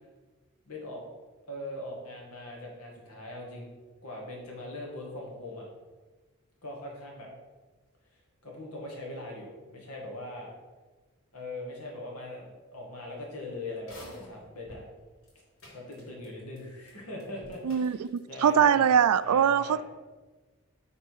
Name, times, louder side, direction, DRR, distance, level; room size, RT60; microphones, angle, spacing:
voice 1, 0.7-1.0 1.5-3.7 4.0-5.7 6.6-7.3 8.4-10.5 11.3-14.8 15.7-18.9 19.2-19.8, left 1 dB, 90° left, -1 dB, 2.1 m, -41 dB
sound 1, 13.8-14.8 15.2-15.3 15.6-16.6 16.8-16.9 17.2-18.2 18.5-18.6, left 1 dB, 65° left, 2.6 m, -49 dB
voice 2, 17.6-19.8, right 8 dB, 90° right, 15 dB, 0.4 m, -23 dB
8.9 x 4.1 x 4.7 m, 1.3 s
head